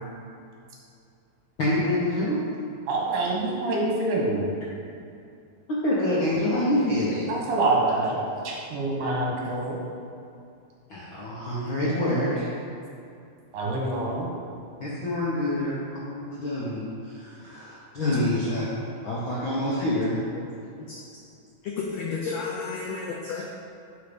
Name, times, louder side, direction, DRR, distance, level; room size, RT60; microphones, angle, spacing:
voice 1, 1.6-2.4 5.7-7.3 10.9-12.5 14.8-18.7 19.0-20.2, left 1 dB, 65° left, -8 dB, 1.2 m, -26 dB
voice 2, 2.9-4.5 7.3-9.8 13.5-14.3, right 2 dB, 75° right, -3 dB, 3.1 m, -26 dB
voice 3, 21.6-23.4, left 5 dB, 90° left, -2 dB, 1.4 m, -32 dB
10.5 x 4.6 x 5.2 m, 2.6 s
omnidirectional pair, 4.0 m